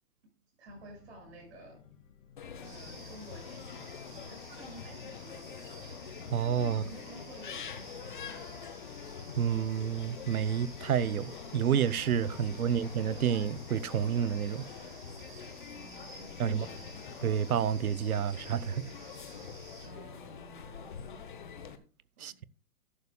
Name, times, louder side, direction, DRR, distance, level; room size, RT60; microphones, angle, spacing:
voice 1, 0.6-1.8 2.6-3.8 4.3-5.5 6.7-8.6 12.4-13.0 15.7-17.2 19.8-21.3 22.2-22.4, equal, 45° right, 6.8 m, -51 dB
sound 1, 0.7-13.3, left 7 dB, 55° left, 2.5 m, -56 dB
sound 2, 2.4-21.8, left 6 dB, 30° left, 0.9 m, -45 dB
sound 3, 2.6-19.9, right 2 dB, 15° right, 4.1 m, -53 dB
voice 2, 6.3-6.8 9.4-14.6 16.4-16.7 17.2-18.9 22.2-22.4, right 8 dB, 65° right, 0.8 m, -29 dB
14.0 x 11.5 x 2.2 m
hypercardioid pair, 175°, 47 cm